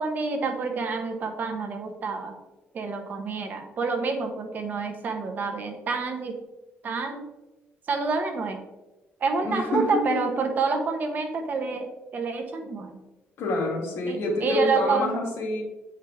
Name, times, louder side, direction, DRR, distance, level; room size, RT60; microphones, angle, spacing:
voice 1, 0.0-2.4 2.7-6.4 6.8-7.2 7.9-8.6 9.2-13.0 14.1-15.1, right 4 dB, 40° right, 4 dB, 1.0 m, -28 dB
voice 2, 9.4-10.2 13.4-15.6, left 2 dB, 70° left, -2 dB, 2.5 m, -27 dB
8.4 x 4.8 x 3.5 m, 1.1 s
cardioid pair, 150°, 4 cm